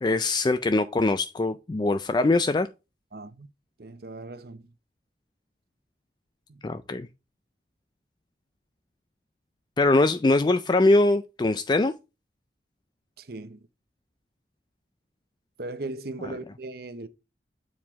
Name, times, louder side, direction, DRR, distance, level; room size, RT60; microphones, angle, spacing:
voice 1, 0.0-2.7 6.6-7.1 9.8-11.9, left 2 dB, 25° left, 0.3 m, -22 dB
voice 2, 3.1-3.5 3.8-4.6 6.5-6.6 13.2-13.6 15.6-17.1, right 2 dB, 60° right, 0.7 m, -38 dB
7.3 x 4.9 x 3.5 m
head